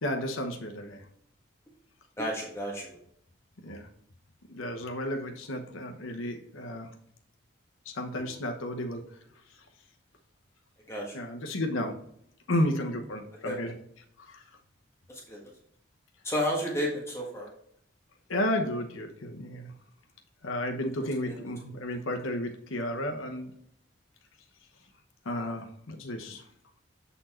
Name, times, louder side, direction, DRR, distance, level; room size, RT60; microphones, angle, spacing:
voice 1, 0.0-1.0 3.6-3.9 4.5-6.9 7.9-9.0 11.1-12.0 12.5-13.7 14.2-14.4 18.3-19.7 20.4-23.5 25.2-26.4, left 1 dB, 85° left, 3 dB, 0.9 m, -32 dB
voice 2, 2.2-3.0 10.9-11.2 13.4-13.6 15.1-15.5 16.2-17.5 21.3-21.4, equal, 15° left, -3 dB, 1.4 m, -32 dB
7.8 x 4.2 x 4.3 m, 0.68 s
head